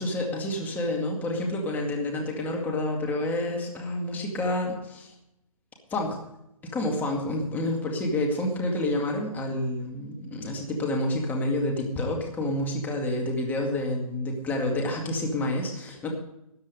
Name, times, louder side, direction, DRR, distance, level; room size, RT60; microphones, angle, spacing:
voice 1, 0.0-5.1 5.9-6.2 6.6-16.1, left 1 dB, 10° left, 0 dB, 2.1 m, -28 dB
13.5 x 10.5 x 5.2 m, 0.81 s
hypercardioid pair, 145°, 18 cm